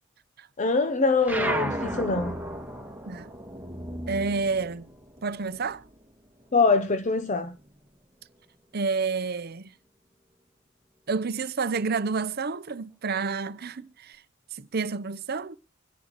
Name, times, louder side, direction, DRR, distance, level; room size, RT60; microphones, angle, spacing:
voice 1, 0.6-2.4 6.5-7.6, left 3 dB, 35° left, 0.7 m, -24 dB
sound 1, 1.2-6.1 6.4-7.9, right 1 dB, 10° right, 2.0 m, -34 dB
voice 2, 4.1-4.9 5.2-5.8 8.7-9.7 11.1-14.2 14.5-15.6, right 4 dB, 50° right, 0.7 m, -29 dB
25.5 x 10.5 x 3.0 m
head